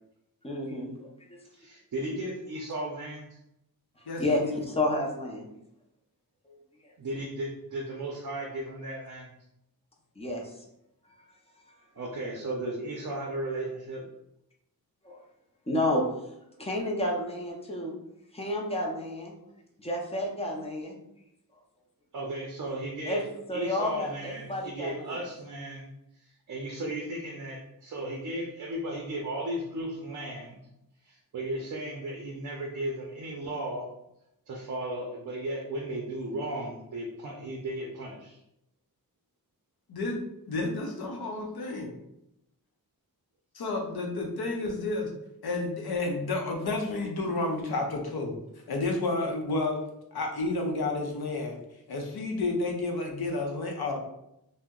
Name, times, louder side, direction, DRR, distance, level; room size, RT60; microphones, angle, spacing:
voice 1, 0.4-1.4 4.2-5.4 6.5-6.6 10.2-10.4 15.0-15.2 15.7-16.0 16.6-18.0 18.3-19.3 19.8-21.0 23.1-23.2 23.5-25.2, left 1 dB, 15° left, -1 dB, 0.5 m, -30 dB
voice 2, 1.5-3.3 7.0-9.3 12.0-14.1 22.1-23.2 23.5-25.9 26.5-30.6 31.1-33.9 34.5-38.4, right 1 dB, 55° right, -2 dB, 0.5 m, -35 dB
voice 3, 4.1-4.6 39.9-41.9 43.5-45.1 45.4-48.3 48.7-49.8 50.1-51.6 51.9-54.0, left 2 dB, 85° left, 2 dB, 0.7 m, -31 dB
2.7 x 2.1 x 3.5 m, 0.82 s
wide cardioid pair, 140°, 37 cm